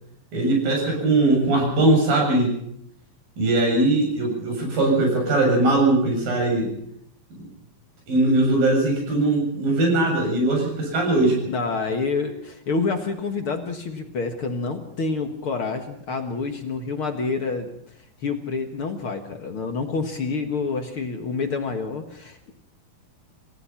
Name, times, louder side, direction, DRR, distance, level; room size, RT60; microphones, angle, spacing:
voice 1, 0.3-2.6 3.4-6.7 8.1-11.5, right 2 dB, 65° right, 0 dB, 9.0 m, -20 dB
voice 2, 11.5-17.7 18.2-22.5, left 4 dB, 50° left, 6 dB, 1.7 m, -28 dB
28.0 x 16.5 x 5.8 m, 0.72 s
omnidirectional pair, 4.3 m